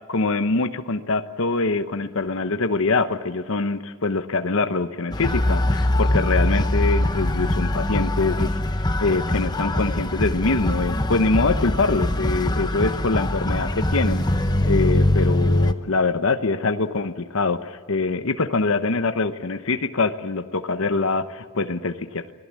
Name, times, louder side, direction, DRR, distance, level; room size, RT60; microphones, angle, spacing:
voice 1, 0.1-14.3 14.7-22.3, left 3 dB, 65° left, 8 dB, 1.0 m, -24 dB
sound 1, 5.1-15.7, left 1 dB, 20° left, 0.9 m, -22 dB
28.0 x 20.0 x 7.5 m, 1.5 s
head